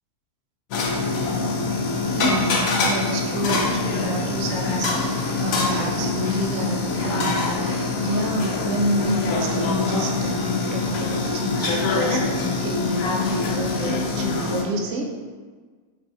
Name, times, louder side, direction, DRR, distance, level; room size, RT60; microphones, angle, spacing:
sound 1, 0.7-14.6, left 3 dB, 70° left, 0.9 m, -24 dB
voice 1, 2.1-15.2, equal, 65° right, 1 dB, 0.9 m, -28 dB
4.8 x 3.6 x 2.6 m, 1.4 s
omnidirectional pair, 1.7 m